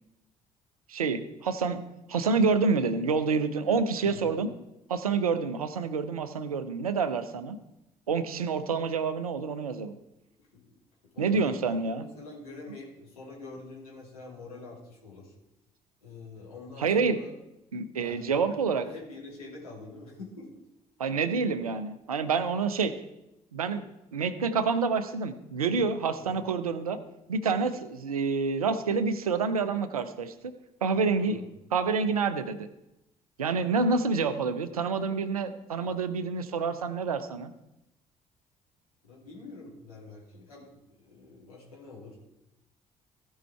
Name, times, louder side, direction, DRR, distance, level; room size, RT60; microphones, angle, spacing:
voice 1, 0.9-1.8 2.1-4.5 4.9-7.6 8.1-10.0 11.2-12.0 16.8-17.2 17.7-18.9 21.0-22.9 23.5-23.8 24.1-27.0 27.3-30.3 30.8-31.4 31.7-32.7 33.4-37.5, right 5 dB, 85° right, 12 dB, 0.6 m, -28 dB
voice 2, 10.4-10.7 11.1-11.7 12.0-15.3 16.0-17.3 18.0-18.2 18.5-18.6 18.8-20.5 26.1-26.4 31.2-31.5 39.0-42.2, left 3 dB, 85° left, -5 dB, 2.9 m, -46 dB
16.0 x 5.6 x 4.5 m, 0.92 s
figure-of-eight pair, 50°, 18 cm